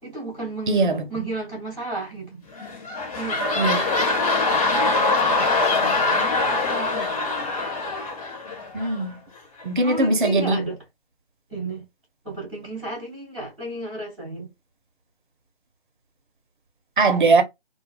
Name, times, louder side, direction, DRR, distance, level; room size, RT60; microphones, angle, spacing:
voice 1, 0.0-2.4 3.1-3.8 4.8-7.1 9.8-10.8 11.5-11.8 12.2-14.5, right 2 dB, ahead, 0.5 m, -33 dB
voice 2, 0.7-1.0 3.6-3.9 8.7-9.2 9.6-10.6 17.0-17.4, right 3 dB, 50° right, 0.7 m, -20 dB
sound 1, 2.5-9.1 9.6-9.7, left 3 dB, 35° left, 1.1 m, -23 dB
2.3 x 2.2 x 3.1 m
figure-of-eight pair, 150°, 32 cm